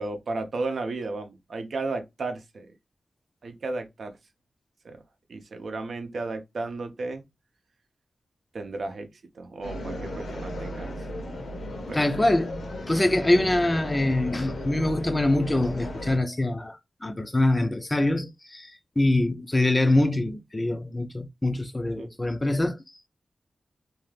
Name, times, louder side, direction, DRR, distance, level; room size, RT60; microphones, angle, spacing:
voice 1, 0.0-2.7 3.4-4.2 4.8-5.0 5.3-7.2 8.5-9.1 9.3-11.1 11.9-12.1 22.0-22.1, right 3 dB, 70° right, 0.6 m, -34 dB
sound 1, 9.6-16.2, left 1 dB, 80° left, 0.8 m, -35 dB
voice 2, 11.9-12.6 12.9-18.7 19.0-22.8, left 1 dB, 20° left, 0.4 m, -24 dB
2.7 x 2.4 x 3.2 m
wide cardioid pair, 115°, 0 cm